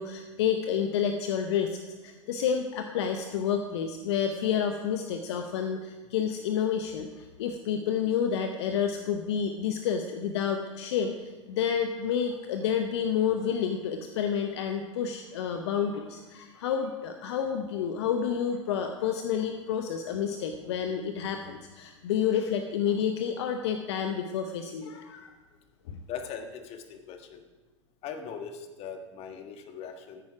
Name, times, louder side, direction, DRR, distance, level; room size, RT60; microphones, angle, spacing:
voice 1, 0.0-1.8 2.0-25.3 25.9-26.0, left 8 dB, 60° left, 6 dB, 0.9 m, -29 dB
voice 2, 26.1-27.4 28.0-30.2, left 7 dB, 40° left, 6 dB, 1.5 m, -40 dB
13.5 x 9.6 x 4.9 m, 1.2 s
figure-of-eight pair, 90°, 16 cm